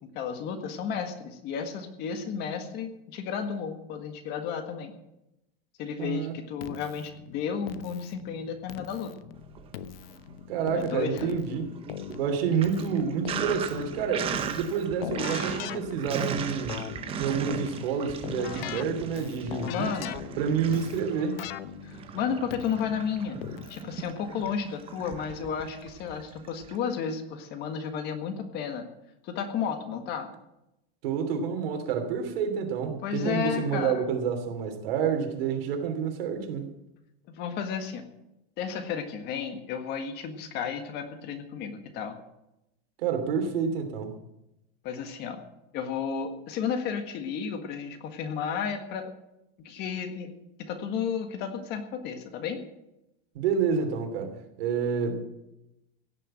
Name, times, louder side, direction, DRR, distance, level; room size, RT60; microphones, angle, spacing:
voice 1, 0.0-4.9 5.8-9.1 10.7-11.1 19.6-20.3 21.8-23.4 23.7-28.9 29.2-30.3 33.0-34.1 37.3-38.1 38.6-42.2 44.8-45.4 45.7-49.1 49.6-50.3 50.6-52.6, left 7 dB, 35° left, 1.6 m, -33 dB
voice 2, 6.0-6.3 10.5-11.7 12.2-16.8 17.2-19.9 20.4-21.4 31.0-36.7 43.0-44.2 53.3-55.2, right 6 dB, 75° right, 3.1 m, -28 dB
Keyboard (musical), 6.6-24.0, left 11 dB, 75° left, 1.0 m, -41 dB
Sink (filling or washing), 9.4-10.3 10.7-26.8, right 7 dB, 20° right, 0.9 m, -38 dB
16.5 x 6.8 x 8.8 m
supercardioid pair, 175°, 30 cm